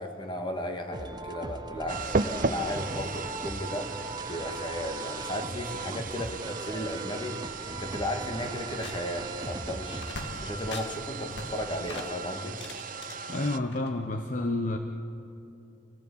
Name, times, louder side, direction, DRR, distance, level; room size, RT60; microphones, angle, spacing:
voice 1, 0.0-3.9 4.3-7.4 7.7-10.0 10.4-12.6, left 1 dB, 25° left, 4 dB, 2.2 m, -35 dB
sound 1, 0.9-10.1, right 3 dB, 25° right, 0.5 m, -39 dB
sound 2, 1.9-13.6, right 4 dB, 50° right, 0.9 m, -36 dB
sound 3, 8.4-9.3 9.5-9.6 9.9-11.0 11.3-13.1 13.7-14.1, left 2 dB, 70° left, 2.3 m, -42 dB
voice 2, 13.3-14.8, left 2 dB, 45° left, 5 dB, 1.0 m, -29 dB
27.0 x 18.0 x 8.6 m, 2.7 s
head